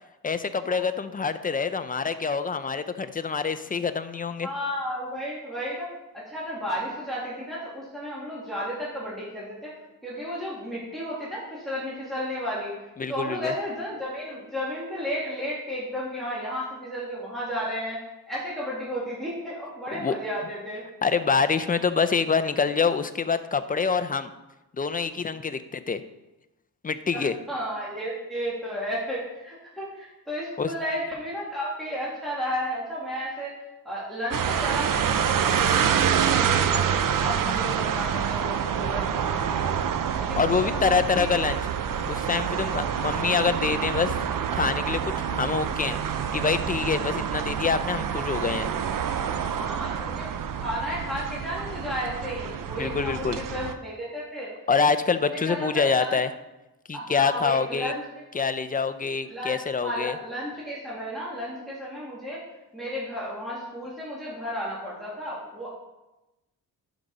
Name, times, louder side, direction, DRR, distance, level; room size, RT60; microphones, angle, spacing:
voice 1, 0.2-4.5 13.0-13.5 19.9-20.2 21.0-24.3 24.8-26.0 26.8-27.3 30.6-30.7 40.4-41.6 42.1-44.1 44.5-45.0 45.3-46.0 46.3-48.7 52.8-53.4 54.7-56.3 56.9-57.9 58.3-60.1, left 5 dB, 25° left, 11 dB, 0.5 m, -26 dB
voice 2, 4.4-9.7 10.0-12.7 13.1-18.0 18.3-20.8 27.1-33.5 33.8-39.8 40.2-41.4 42.9-43.3 49.6-50.3 50.6-54.5 55.3-56.2 56.9-58.0 59.3-62.4 62.7-65.7, equal, ahead, -7 dB, 2.3 m, -33 dB
sound 1, 34.3-53.7, right 8 dB, 55° right, 0.6 m, -27 dB
11.5 x 5.0 x 4.0 m, 1.0 s
wide cardioid pair, 105°, 39 cm